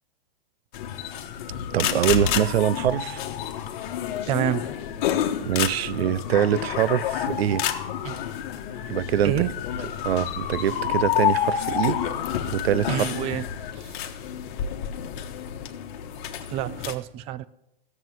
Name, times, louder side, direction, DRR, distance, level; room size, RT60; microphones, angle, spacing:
sound 1, 0.7-16.9, left 9 dB, 55° left, 1.4 m, -29 dB
voice 1, 1.7-3.2 5.4-7.7 8.9-9.4 10.0-12.0 12.5-13.1, right 11 dB, 90° right, 0.5 m, -24 dB
voice 2, 4.3-4.7 8.0-8.2 9.2-9.5 12.9-13.5 13.7-14.0 16.5-17.5, right 12 dB, 20° right, 0.4 m, -28 dB
14.5 x 7.6 x 7.3 m
hypercardioid pair, 135°, 30 cm